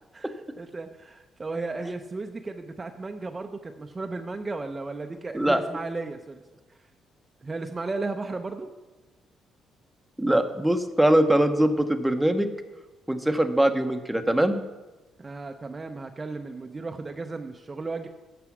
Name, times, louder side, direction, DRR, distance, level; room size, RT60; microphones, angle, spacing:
voice 1, 0.1-6.4 7.4-8.7 15.2-18.1, right 3 dB, 25° right, 6 dB, 0.6 m, -35 dB
voice 2, 10.2-12.5 13.1-14.6, right 1 dB, 5° right, 7 dB, 0.9 m, -22 dB
9.7 x 6.9 x 6.0 m, 1.1 s
cardioid pair, 90°, 0 cm